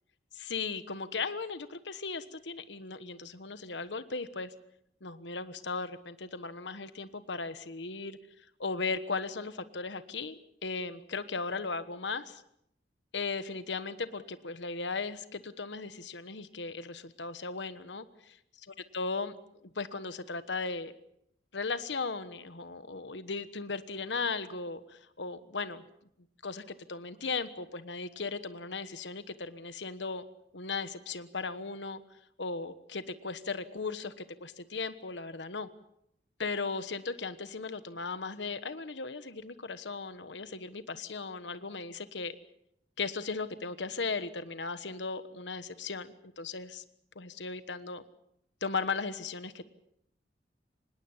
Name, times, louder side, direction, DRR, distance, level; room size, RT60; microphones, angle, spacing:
voice 1, 0.3-4.5 5.0-8.2 8.6-12.4 13.1-18.4 18.9-19.4 19.7-20.9 21.5-25.8 26.4-30.2 30.5-32.0 32.4-35.7 36.4-42.3 43.0-46.1 46.4-46.8 47.1-48.0 48.6-49.7, left 4 dB, 85° left, 12 dB, 1.3 m, -37 dB
25.5 x 20.5 x 7.3 m, 0.76 s
head